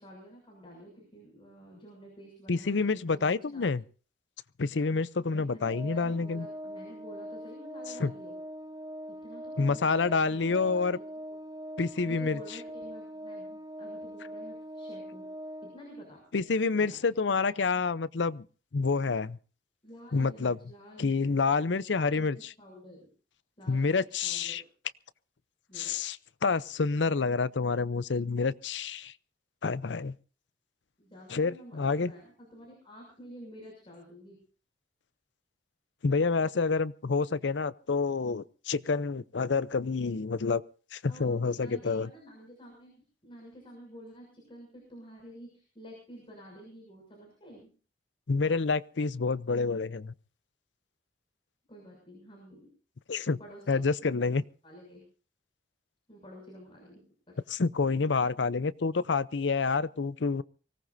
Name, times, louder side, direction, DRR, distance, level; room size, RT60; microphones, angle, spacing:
voice 1, 0.0-3.6 5.2-8.4 9.1-11.0 11.9-15.3 15.6-16.2 16.7-17.0 19.8-21.3 21.9-23.1 23.6-24.7 25.7-26.2 31.0-34.4 41.0-47.7 51.7-52.7 53.4-54.3 54.6-55.0 56.1-57.4, equal, 30° left, 6.6 m, -50 dB
voice 2, 2.5-3.8 4.6-6.5 8.0-8.1 9.6-11.0 11.8-12.4 16.3-18.5 18.7-19.4 20.1-20.6 21.0-22.5 23.7-24.6 25.8-26.2 26.4-29.1 29.6-30.1 31.3-32.1 36.0-40.6 40.9-42.1 48.3-50.1 53.1-53.4 53.7-54.4 57.5-60.4, left 4 dB, 85° left, 0.6 m, -28 dB
Organ, 5.6-16.3, equal, 20° right, 0.6 m, -42 dB
24.0 x 18.0 x 2.7 m
head